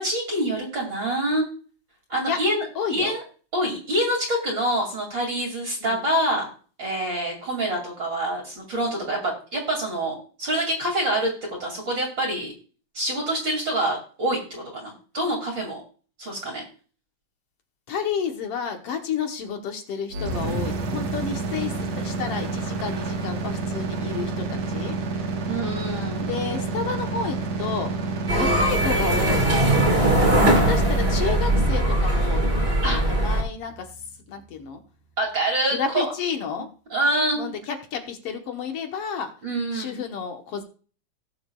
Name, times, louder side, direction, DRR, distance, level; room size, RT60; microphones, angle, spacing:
voice 1, 0.0-1.5 2.1-2.6 2.9-3.2 3.5-6.5 6.8-11.3 11.6-12.5 12.9-15.8 16.2-16.6 25.5-26.3 32.8-33.0 35.2-36.1 36.9-37.5 39.4-40.0, right 1 dB, 40° right, -2 dB, 2.9 m, -26 dB
voice 2, 2.8-3.2 5.8-6.1 17.9-25.0 26.3-27.9 28.3-29.5 30.5-33.9 34.3-34.8 35.7-36.7 37.3-39.3 39.7-40.6, left 6 dB, 60° left, 5 dB, 1.8 m, -31 dB
sound 1, 20.1-34.0, right 3 dB, 60° right, 2.4 m, -29 dB
sound 2, 28.3-33.4, right 1 dB, 25° right, 1.8 m, -20 dB
18.0 x 7.1 x 2.3 m, 0.39 s
omnidirectional pair, 3.5 m